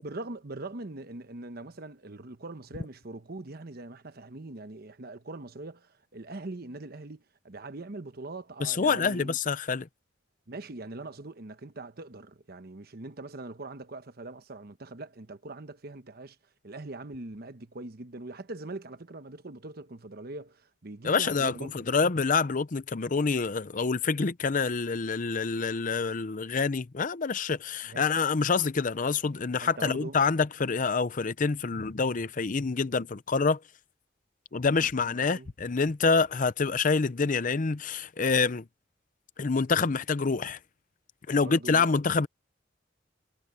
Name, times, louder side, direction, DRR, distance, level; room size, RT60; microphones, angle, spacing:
voice 1, 0.0-9.4 10.5-16.4 16.6-21.8 25.6-25.7 27.8-28.1 29.6-30.2 34.8-35.5 41.3-41.9, right 2 dB, 55° right, 1.1 m, -42 dB
voice 2, 8.6-9.9 21.0-33.6 34.5-38.6 39.4-40.6 41.3-42.3, left 4 dB, 45° left, 0.6 m, -27 dB
head